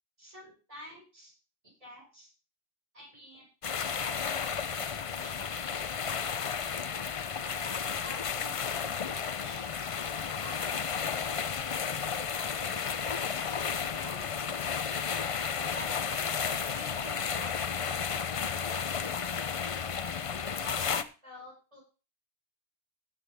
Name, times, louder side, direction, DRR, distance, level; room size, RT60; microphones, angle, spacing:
voice 1, 0.2-1.3 1.8-2.3 2.9-3.5 7.6-8.9 9.4-9.7 10.3-12.0 12.3-14.9 15.7-16.5 16.7-18.6 20.0-21.8, left 1 dB, 30° right, -4 dB, 5.4 m, -50 dB
sound 1, 3.6-21.0, left 6 dB, 45° left, 0.5 m, -33 dB
16.0 x 6.9 x 3.4 m, 0.33 s
omnidirectional pair, 1.1 m